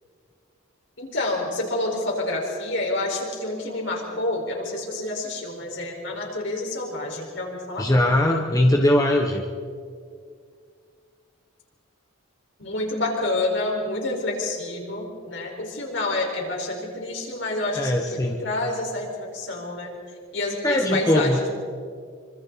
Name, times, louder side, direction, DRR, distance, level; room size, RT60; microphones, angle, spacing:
voice 1, 1.0-7.8 12.6-19.9 20.3-21.5, left 2 dB, 60° left, -1 dB, 5.0 m, -28 dB
voice 2, 7.8-9.4 17.8-18.4 20.6-21.4, left 1 dB, 15° left, 2 dB, 1.1 m, -20 dB
26.5 x 25.5 x 4.2 m, 2.1 s
head